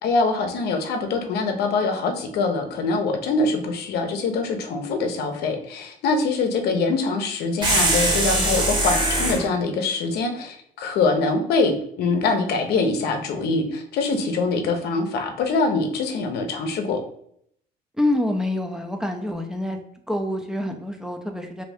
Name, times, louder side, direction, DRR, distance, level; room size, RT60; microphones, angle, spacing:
voice 1, 0.0-17.0, left 3 dB, 70° left, 5 dB, 0.6 m, -24 dB
sound 1, 7.6-9.5, right 1 dB, 25° right, 1.0 m, -21 dB
voice 2, 18.0-19.8 20.1-21.6, left 1 dB, 5° right, 4 dB, 0.4 m, -26 dB
2.7 x 2.6 x 3.4 m, 0.69 s
cardioid pair, 110°, 17 cm